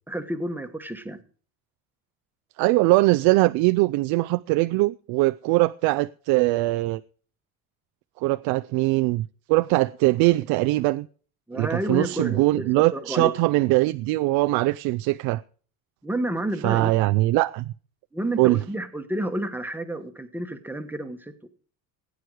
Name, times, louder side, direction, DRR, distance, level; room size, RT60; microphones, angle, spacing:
voice 1, 0.1-1.2 11.5-12.6 12.9-13.3 16.0-16.9 18.1-21.5, right 1 dB, 5° right, 1.3 m, -30 dB
voice 2, 2.6-7.0 8.2-11.1 11.5-15.4 16.6-17.7 18.4-18.6, right 20 dB, 85° right, 0.5 m, -21 dB
16.0 x 9.5 x 4.8 m
cardioid pair, 150°, 36 cm